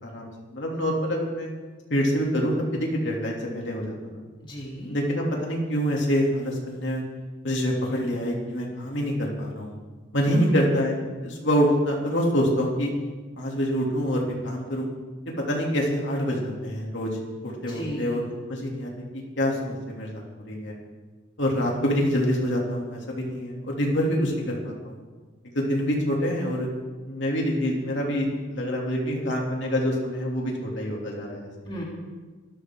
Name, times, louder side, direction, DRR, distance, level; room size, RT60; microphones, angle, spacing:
voice 1, 0.0-1.5 1.9-4.0 4.9-7.0 7.4-9.7 10.1-12.9 13.4-14.9 15.5-17.1 17.4-20.7 21.4-25.0 25.5-26.7 27.1-31.5, equal, 65° left, -2 dB, 3.1 m, -26 dB
voice 2, 4.4-4.9 10.3-10.7 17.6-18.2 24.1-24.3 31.6-31.8, equal, 25° left, -4 dB, 3.4 m, -34 dB
24.5 x 12.5 x 4.0 m, 1.3 s
head